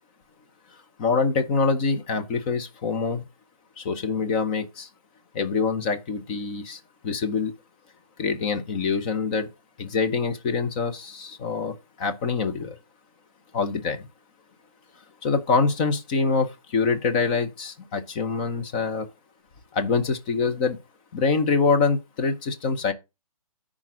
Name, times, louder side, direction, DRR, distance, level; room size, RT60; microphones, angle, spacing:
voice 1, 1.0-3.2 3.8-4.9 5.3-7.5 8.2-9.5 9.8-12.8 13.5-14.1 15.2-19.1 19.7-20.8 21.1-22.9, left 4 dB, 15° left, 0.6 m, -25 dB
10.5 x 3.7 x 6.1 m
hypercardioid pair, 170°, 19 cm